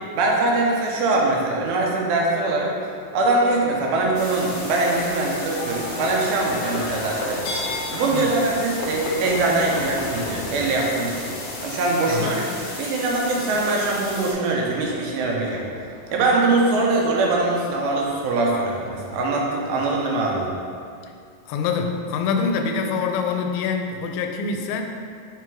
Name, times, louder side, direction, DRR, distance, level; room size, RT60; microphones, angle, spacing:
voice 1, 0.1-2.7 3.1-7.4 7.9-11.4 11.6-12.4 12.8-15.6 16.1-20.5, right 2 dB, 90° right, -2 dB, 2.7 m, -22 dB
Livestock farm animals working animals, 3.4-19.8, left 2 dB, 75° left, 2.0 m, -35 dB
sound 1, 4.1-14.3, left 2 dB, 50° left, 2.2 m, -36 dB
voice 2, 12.1-12.4 21.5-24.8, left 5 dB, 90° left, 4 dB, 2.4 m, -25 dB
6.5 x 3.5 x 4.6 m, 2.3 s
omnidirectional pair, 4.1 m